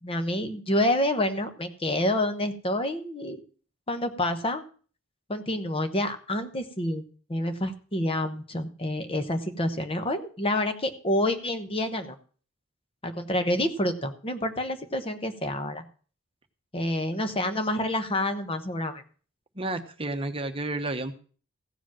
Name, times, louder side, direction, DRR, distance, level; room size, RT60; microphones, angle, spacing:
voice 1, 0.0-3.4 3.9-4.6 5.3-7.0 7.3-12.2 13.0-15.9 16.7-19.0, left 1 dB, 25° left, 8 dB, 1.1 m, -28 dB
voice 2, 19.6-21.1, right 2 dB, 25° right, 7 dB, 1.0 m, -31 dB
15.5 x 5.1 x 7.4 m, 0.41 s
head